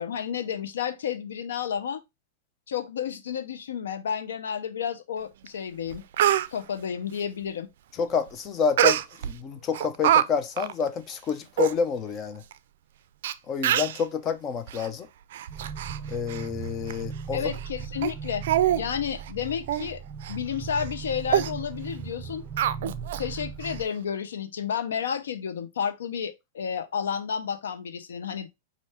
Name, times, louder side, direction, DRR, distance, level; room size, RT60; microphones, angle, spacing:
voice 1, 0.0-2.0 2.7-6.0 6.5-7.7 17.3-18.4 18.8-20.0 20.3-22.4 22.8-28.5, left 8 dB, 85° left, 0.7 m, -31 dB
Speech, 5.5-5.6 5.9-6.5 8.8-9.3 9.7-10.2 10.6-10.7 11.3-11.4 11.6-11.7 12.5-12.6 13.2-13.3 13.6-14.0 14.7-14.9 15.3-16.0 16.3-16.5 16.9-17.0 17.5-17.7 18.0-18.1 18.4-18.8 19.1-19.3 19.7-19.9 20.2-20.4 20.7-20.9 21.3-21.5 22.6-23.2 23.6-23.7, right 11 dB, 70° right, 0.4 m, -24 dB
voice 2, 8.0-12.4 13.5-15.1 16.1-17.5, left 6 dB, 30° left, 0.7 m, -28 dB
sound 1, 15.5-23.8, right 6 dB, 25° right, 0.6 m, -38 dB
5.5 x 2.6 x 3.4 m
hypercardioid pair, 135°, 0 cm